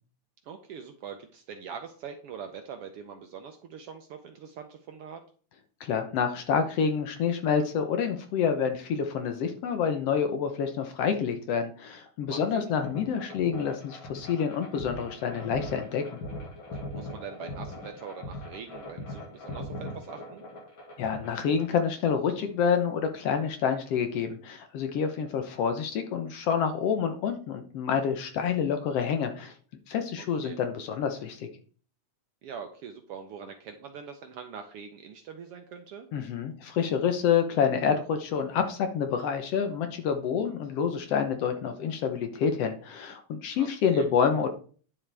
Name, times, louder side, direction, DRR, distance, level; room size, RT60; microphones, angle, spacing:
voice 1, 0.4-5.2 12.3-12.7 16.9-20.4 30.2-30.6 32.4-36.1 43.5-44.1, right 7 dB, 70° right, 6 dB, 1.5 m, -43 dB
voice 2, 5.8-16.0 21.0-29.5 29.9-31.5 36.1-44.5, left 7 dB, 65° left, 7 dB, 1.7 m, -28 dB
sound 1, 12.8-21.7, left 1 dB, 45° left, 2.5 m, -40 dB
10.0 x 7.3 x 3.4 m, 0.42 s
omnidirectional pair, 3.3 m